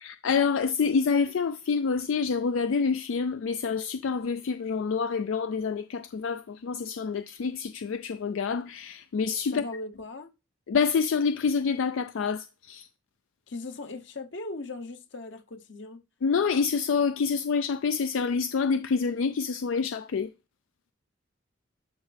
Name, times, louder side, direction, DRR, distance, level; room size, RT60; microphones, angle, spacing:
voice 1, 0.0-9.6 10.7-12.9 16.2-20.3, left 5 dB, 80° left, 0.4 m, -27 dB
voice 2, 9.5-10.3 13.5-16.0, left 2 dB, 65° left, 0.9 m, -38 dB
12.0 x 5.3 x 3.4 m
head